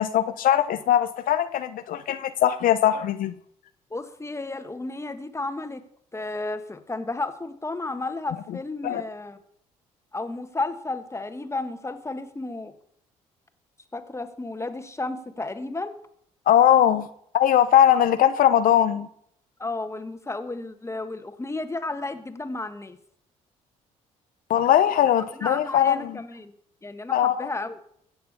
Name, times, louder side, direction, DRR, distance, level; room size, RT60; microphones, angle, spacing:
voice 1, 0.0-3.3 8.8-9.0 16.5-17.1 17.3-19.1 24.5-26.1 27.1-27.4, left 10 dB, 70° left, 11 dB, 0.7 m, -20 dB
voice 2, 3.9-5.8 6.1-9.4 10.1-12.7 13.9-15.9 17.9-18.1 19.6-23.0 25.3-26.5 26.8-27.8, left 2 dB, 20° left, 9 dB, 1.6 m, -33 dB
16.0 x 6.7 x 6.8 m, 0.68 s
supercardioid pair, 60°, 15 cm